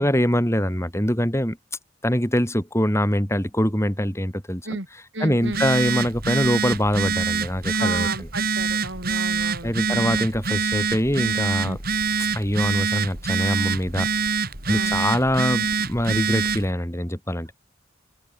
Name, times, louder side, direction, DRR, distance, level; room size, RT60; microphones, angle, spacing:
voice 1, 0.0-1.6 2.0-4.6 5.2-8.1 9.6-11.8 12.3-14.1 14.7-17.5, equal, 15° left, 6.8 m, -23 dB
voice 2, 5.1-5.6 7.7-10.2 11.6-11.8 14.7-14.9, right 2 dB, 65° right, 6.8 m, -33 dB
Telephone, 5.4-16.7, right 5 dB, 50° right, 5.3 m, -25 dB
open air
head